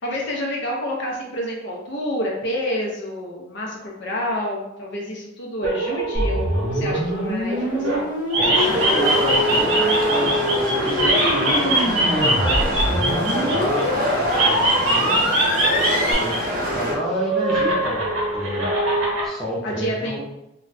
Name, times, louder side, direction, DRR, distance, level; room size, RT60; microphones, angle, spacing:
voice 1, 0.0-8.9 19.6-20.2, left 1 dB, 55° left, -1 dB, 0.6 m, -29 dB
sound 1, 5.6-8.0 8.3-13.8 14.3-16.4 16.7-19.3, right 1 dB, 85° right, 0.8 m, -23 dB
sound 2, 6.1-16.1, left 1 dB, 40° left, 1.0 m, -25 dB
voice 2, 8.3-15.2 16.2-16.3 16.7-18.7 19.2-20.2, right 1 dB, ahead, -8 dB, 0.6 m, -29 dB
sound 3, 8.5-16.9, equal, 40° right, 0.6 m, -26 dB
2.3 x 2.1 x 3.9 m, 0.87 s
head